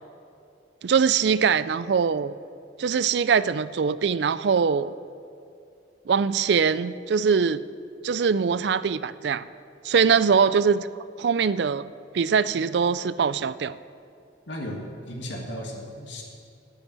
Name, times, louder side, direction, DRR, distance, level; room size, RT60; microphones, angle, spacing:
voice 1, 0.8-2.3 2.8-4.9 6.1-7.6 8.0-9.4 9.8-10.9 11.2-13.8, right 6 dB, 65° right, 16 dB, 0.4 m, -22 dB
voice 2, 14.5-16.2, equal, 80° left, -1 dB, 1.7 m, -35 dB
10.0 x 8.8 x 8.8 m, 2.5 s
head